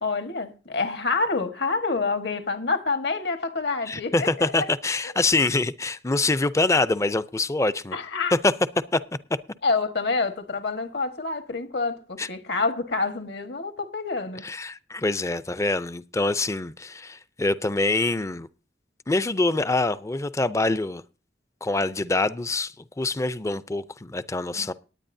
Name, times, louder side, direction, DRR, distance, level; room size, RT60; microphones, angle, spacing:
voice 1, 0.0-4.7 7.9-8.3 9.6-14.4 24.5-24.7, left 4 dB, 65° left, 1.4 m, -27 dB
voice 2, 3.9-8.0 8.4-8.5 8.9-9.0 12.2-12.3 14.4-18.5 19.1-21.0 21.6-24.7, left 2 dB, 15° left, 0.5 m, -25 dB
19.0 x 9.2 x 2.7 m
head